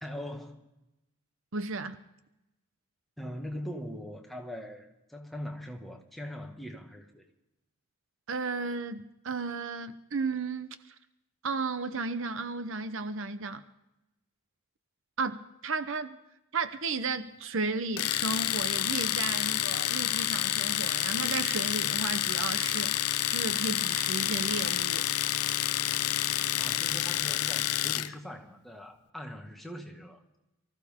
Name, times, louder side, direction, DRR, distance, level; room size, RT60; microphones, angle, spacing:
voice 1, 0.0-0.6 3.2-7.3 26.5-30.2, equal, ahead, 1.6 m, -41 dB
voice 2, 1.5-2.0 8.3-10.8 11.4-13.6 15.2-16.2 16.5-23.0 23.3-25.1, right 4 dB, 60° right, 0.8 m, -34 dB
Domestic sounds home sounds, 18.0-28.1, left 13 dB, 90° left, 0.5 m, -29 dB
24.5 x 15.0 x 3.6 m
head